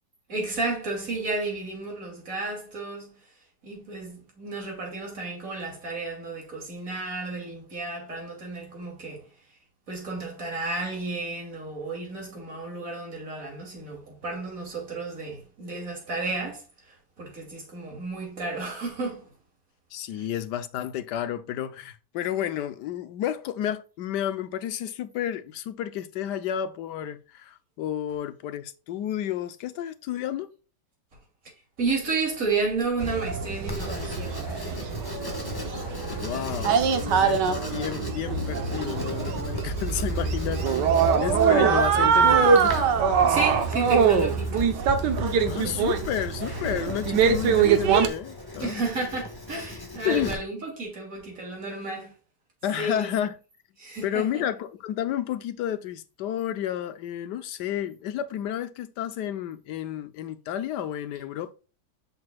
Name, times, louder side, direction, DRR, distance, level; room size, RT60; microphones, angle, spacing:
voice 1, 0.3-3.2 3.6-9.3 9.9-19.3 20.1-20.2 31.8-34.4 36.1-37.6 43.2-44.7 48.6-52.1 52.8-53.1 53.8-54.4, right 3 dB, 50° right, 3.2 m, -32 dB
voice 2, 19.9-30.5 36.1-42.9 45.5-48.8 50.0-50.4 52.6-53.3 54.0-61.5, left 10 dB, 80° left, 1.3 m, -31 dB
sound 1, 33.0-48.1, right 6 dB, 85° right, 1.5 m, -23 dB
Writing, 33.7-50.3, left 1 dB, 15° left, 1.3 m, -38 dB
7.6 x 6.1 x 2.3 m
omnidirectional pair, 1.8 m